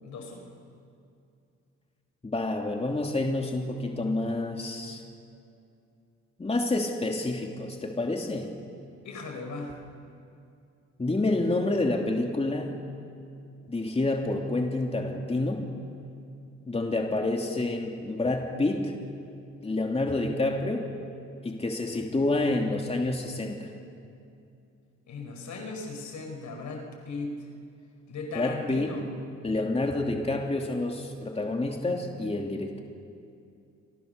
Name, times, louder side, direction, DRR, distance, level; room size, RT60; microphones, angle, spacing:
voice 1, 0.0-0.5 9.0-9.7 25.1-27.3 28.1-29.0, left 3 dB, 70° left, 3 dB, 5.1 m, -37 dB
voice 2, 2.2-5.0 6.4-8.5 11.0-12.7 13.7-15.7 16.7-18.9 19.6-20.9 21.4-23.7 28.3-28.9 29.4-32.8, left 2 dB, 20° left, 1 dB, 2.9 m, -28 dB
29.5 x 24.5 x 6.8 m, 2.5 s
cardioid pair, 90°, 30 cm